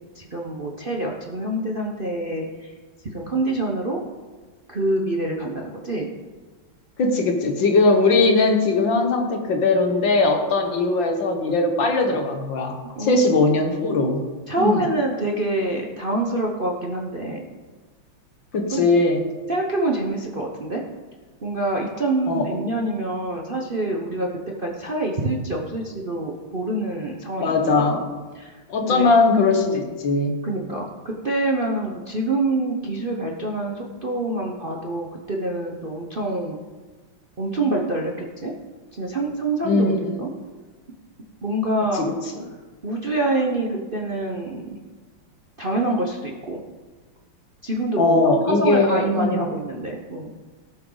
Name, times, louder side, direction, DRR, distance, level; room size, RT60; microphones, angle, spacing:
voice 1, 0.1-2.7 3.1-4.0 4.7-6.1 12.8-13.2 14.5-17.4 18.7-18.9 19.5-20.8 21.4-24.3 24.6-28.0 28.3-28.6 28.9-29.1 29.6-29.8 30.4-36.6 37.4-38.5 38.9-40.3 41.4-42.1 42.8-44.8 45.6-46.6 47.6-50.3, right 2 dB, 40° right, -1 dB, 0.8 m, -26 dB
voice 2, 7.0-14.2 14.6-14.9 18.5-19.2 22.3-22.5 27.4-28.0 28.7-30.4 39.6-40.2 41.9-42.1 42.4-42.5 48.0-49.4, left 3 dB, 60° left, 4 dB, 2.1 m, -20 dB
18.0 x 7.7 x 4.0 m, 1.3 s
omnidirectional pair, 2.4 m